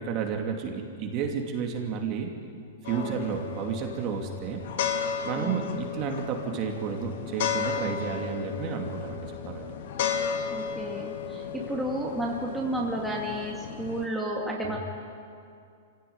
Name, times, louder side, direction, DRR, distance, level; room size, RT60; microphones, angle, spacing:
voice 1, 0.0-2.3 2.9-4.6 5.2-9.7 14.6-14.8, right 6 dB, 30° right, 2 dB, 2.7 m, -31 dB
sound 1, 2.8-14.1, left 7 dB, 60° left, 2.3 m, -34 dB
voice 2, 2.9-3.2 5.3-5.8 10.5-14.8, right 1 dB, 5° right, -3 dB, 2.4 m, -32 dB
25.5 x 16.5 x 9.7 m, 2.4 s
hypercardioid pair, 160°, 0 cm